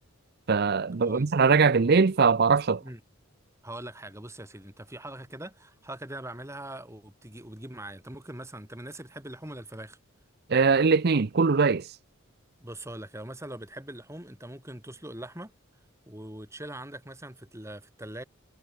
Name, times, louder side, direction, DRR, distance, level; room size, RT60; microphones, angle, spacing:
voice 1, 0.5-2.8 10.5-11.8, right 5 dB, 50° right, 0.6 m, -21 dB
voice 2, 3.6-10.0 12.6-15.5 16.1-18.2, right 1 dB, 15° right, 5.6 m, -42 dB
head